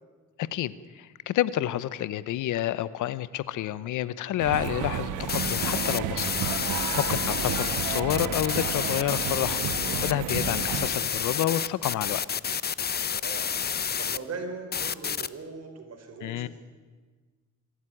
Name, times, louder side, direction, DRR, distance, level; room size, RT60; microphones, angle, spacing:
voice 1, 0.4-9.6 10.0-12.2 16.2-16.5, left 13 dB, 80° left, 17 dB, 0.9 m, -29 dB
sound 1, 4.4-10.9, right 9 dB, 90° right, 1.3 m, -32 dB
sound 2, 5.3-14.2 14.7-15.3, left 7 dB, 35° left, 0.7 m, -29 dB
voice 2, 12.9-13.5 14.0-16.5, right 4 dB, 55° right, 5 dB, 4.6 m, -40 dB
24.5 x 12.5 x 10.0 m, 1.4 s
cardioid pair, 90°, 30 cm